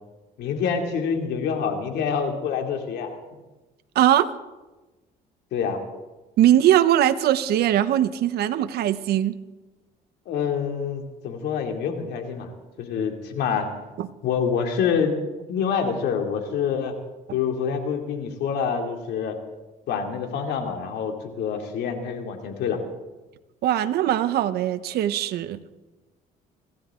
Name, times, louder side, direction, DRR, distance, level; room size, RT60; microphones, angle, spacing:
voice 1, 0.4-3.2 5.5-5.8 10.3-12.5 12.8-13.7 14.2-15.1 15.5-17.0 17.3-19.4 19.9-22.8, left 6 dB, 75° left, 4 dB, 2.7 m, -26 dB
voice 2, 3.9-4.3 6.4-9.4 14.0-14.1 23.6-25.6, right 12 dB, 70° right, 12 dB, 0.9 m, -20 dB
25.0 x 15.0 x 3.8 m, 1.1 s
cardioid pair, 110°, 17 cm